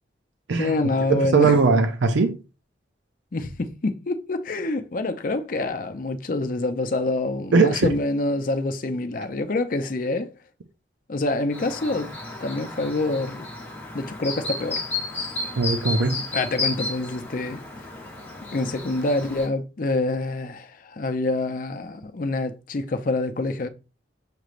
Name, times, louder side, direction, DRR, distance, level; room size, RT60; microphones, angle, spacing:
voice 1, 0.6-1.5 3.3-10.3 11.1-12.1 12.4-13.5 13.9-14.8 16.3-17.6 18.5-23.7, left 2 dB, 45° left, 0.5 m, -26 dB
voice 2, 1.1-2.4 7.5-7.9 15.6-16.3, right 4 dB, 80° right, 0.5 m, -19 dB
Chirp tweet, 11.5-19.5, left 3 dB, 15° left, 1.0 m, -33 dB
6.6 x 3.1 x 2.5 m
head